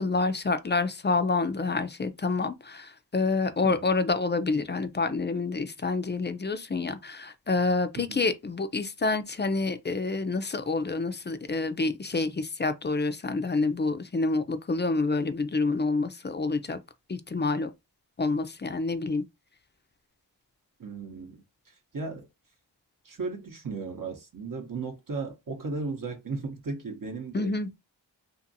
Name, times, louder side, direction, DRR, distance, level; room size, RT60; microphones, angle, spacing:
voice 1, 0.0-16.8 17.1-17.7 18.2-19.2 27.3-27.7, left 3 dB, 25° left, 0.5 m, -28 dB
voice 2, 20.8-22.3 23.0-27.5, right 4 dB, 45° right, 0.8 m, -36 dB
2.7 x 2.5 x 2.6 m
cardioid pair, 40°, 44 cm